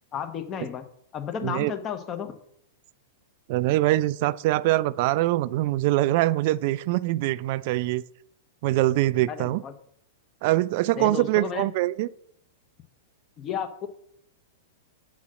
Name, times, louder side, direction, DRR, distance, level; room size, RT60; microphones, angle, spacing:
voice 1, 0.1-0.8 1.1-2.3 9.3-9.7 11.0-11.7 13.4-13.9, left 7 dB, 30° left, 8 dB, 1.0 m, -32 dB
voice 2, 3.5-8.0 8.6-9.6 10.4-12.1, right 16 dB, 55° right, 17 dB, 0.3 m, -23 dB
7.3 x 4.1 x 6.2 m, 0.69 s
hypercardioid pair, 115°, 0 cm